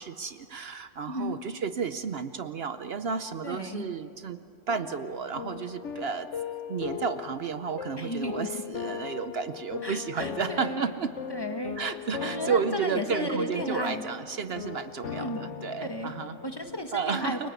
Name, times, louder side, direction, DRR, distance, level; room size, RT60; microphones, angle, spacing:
voice 1, 0.0-4.4 4.7-6.3 6.7-11.1 11.8-16.3 16.9-17.5, right 6 dB, 60° right, 11 dB, 0.9 m, -32 dB
voice 2, 1.1-1.4 3.4-3.8 8.0-8.5 9.8-10.9 11.3-11.8 12.2-14.0 15.1-15.4 15.8-16.1 16.4-17.5, equal, 20° left, 5 dB, 1.7 m, -34 dB
sound 1, 4.7-16.8, left 7 dB, 80° left, 1.2 m, -39 dB
28.5 x 23.5 x 8.2 m, 2.9 s
omnidirectional pair, 1.2 m